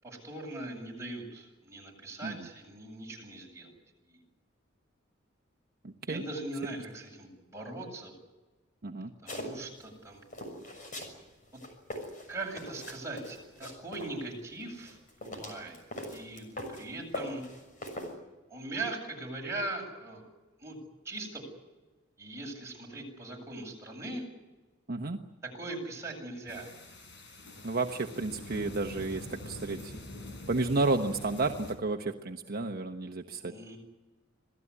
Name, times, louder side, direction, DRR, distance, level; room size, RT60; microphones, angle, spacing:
voice 1, 0.0-3.7 4.1-4.2 6.1-8.1 9.2-10.2 12.3-15.8 16.1-16.5 16.7-17.4 18.5-20.3 20.6-20.8 21.0-21.4 22.2-24.2 25.5-26.7 33.4-33.8, right 2 dB, 15° right, -1 dB, 7.7 m, -40 dB
voice 2, 5.8-6.2 8.8-9.1 24.9-25.2 27.6-30.0 30.5-33.5, right 3 dB, 50° right, 3 dB, 1.1 m, -32 dB
sound 1, 9.3-9.9 10.3-11.2 11.5-14.1 14.7-16.9 17.1-18.1, left 1 dB, 45° left, 6.6 m, -41 dB
sound 2, 26.5-31.7, left 1 dB, 65° left, 5.0 m, -45 dB
27.0 x 17.0 x 9.8 m, 1.2 s
head